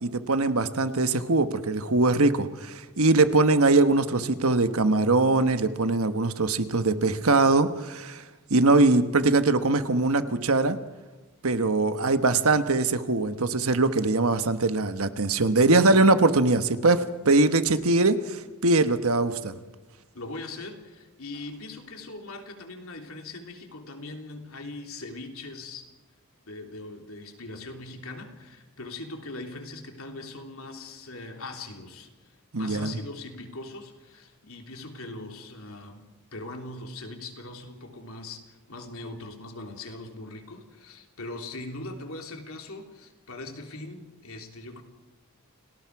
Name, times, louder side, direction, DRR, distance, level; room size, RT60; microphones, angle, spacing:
voice 1, 0.0-8.2 8.5-10.8 11.4-19.6 32.5-33.0, right 3 dB, 75° right, 10 dB, 1.3 m, -22 dB
voice 2, 20.1-25.9 26.4-36.0 36.3-44.8, left 2 dB, 70° left, 3 dB, 3.3 m, -40 dB
29.5 x 18.5 x 4.8 m, 1.2 s
head